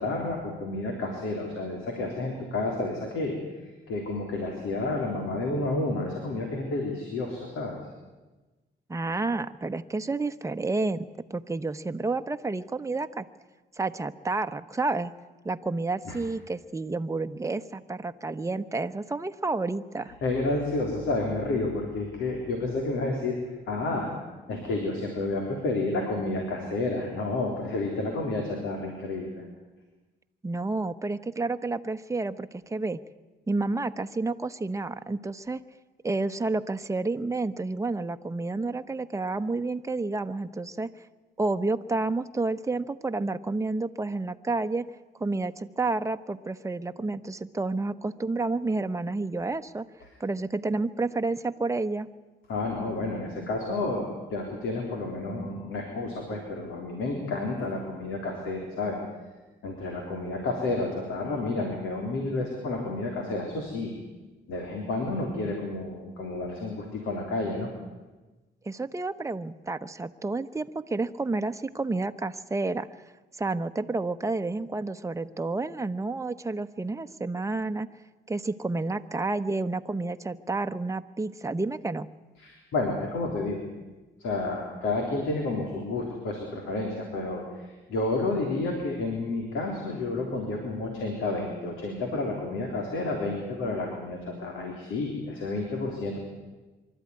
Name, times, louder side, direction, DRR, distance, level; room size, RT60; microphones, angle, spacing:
voice 1, 0.0-3.4 3.6-7.8 16.1-16.2 20.2-23.4 23.7-24.1 24.5-29.4 52.5-59.0 59.6-63.9 64.5-67.7 82.4-83.6 84.2-96.2, left 2 dB, 80° left, 2 dB, 3.6 m, -30 dB
voice 2, 8.9-13.3 13.7-15.1 15.4-20.1 30.4-33.0 33.5-35.6 36.0-40.9 41.4-44.9 45.2-49.9 50.2-52.1 68.6-72.9 73.4-77.9 78.3-82.1, right 3 dB, 15° right, 9 dB, 1.0 m, -30 dB
24.5 x 13.0 x 9.7 m, 1.2 s
cardioid pair, 90°, 20 cm